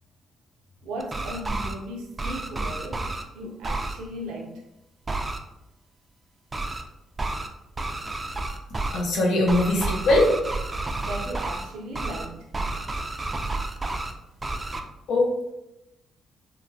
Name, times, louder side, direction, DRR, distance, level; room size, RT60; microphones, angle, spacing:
voice 1, 0.8-3.0 3.3-4.6 11.0-12.5, right 1 dB, 85° right, 1 dB, 0.5 m, -36 dB
sound 1, 1.0-1.7 2.2-3.2 3.6-3.9 5.1-5.4 6.5-6.8 7.2-7.5 7.8-9.0 9.5-11.6 11.9-12.2 12.5-14.1 14.4-14.8, right 2 dB, 25° right, 0.3 m, -30 dB
voice 2, 8.9-10.3 15.1-15.5, left 1 dB, 80° left, -1 dB, 0.7 m, -21 dB
2.8 x 2.1 x 2.6 m, 0.91 s
cardioid pair, 90°, 0 cm